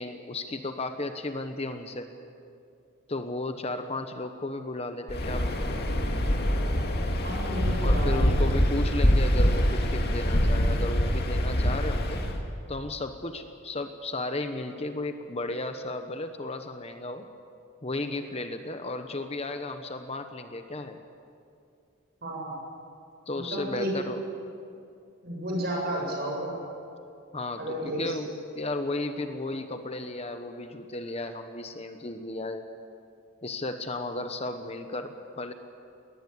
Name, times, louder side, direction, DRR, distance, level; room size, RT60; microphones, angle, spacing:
voice 1, 0.0-2.1 3.1-5.8 7.8-12.2 12.7-17.3 17.8-21.0 23.3-24.2 27.3-32.6 33.4-35.5, left 2 dB, 30° left, 8 dB, 1.0 m, -34 dB
Waves surf, 5.1-12.4, equal, 50° left, 2.3 m, -25 dB
voice 2, 7.2-8.4 22.2-22.5 23.5-23.9 25.2-26.5 27.6-28.1, equal, 50° right, -1 dB, 7.3 m, -32 dB
20.5 x 19.5 x 8.5 m, 2.5 s
head